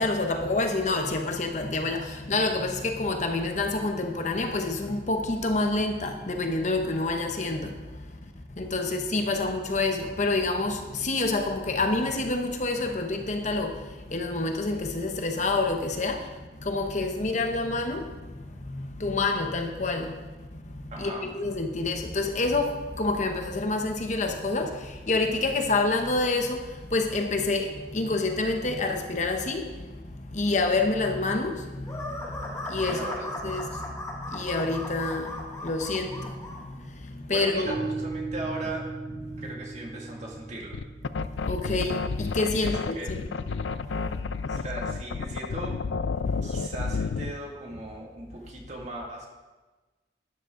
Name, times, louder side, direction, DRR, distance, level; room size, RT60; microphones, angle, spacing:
voice 1, 0.0-7.7 8.6-13.7 14.1-16.2 16.6-18.0 18.7-20.1 21.0-24.7 25.1-26.6 26.9-29.6 30.3-32.1 32.7-33.7 34.3-35.3 35.6-36.3 37.3-37.7 41.5-43.2, left 2 dB, 40° left, 5 dB, 0.9 m, -27 dB
voice 2, 8.8-9.5 20.9-21.3 32.9-33.9 37.3-38.9 39.4-40.8 42.6-43.5 44.0-44.1 44.5-45.8 46.4-49.3, right 2 dB, 40° right, -1 dB, 2.3 m, -39 dB
sound 1, 31.8-36.6, left 1 dB, 20° left, 1.9 m, -37 dB
sound 2, 37.6-45.5, right 3 dB, 60° right, 3.0 m, -39 dB
sound 3, 40.7-47.4, left 4 dB, 85° left, 0.4 m, -30 dB
12.5 x 10.0 x 3.9 m, 1.2 s
head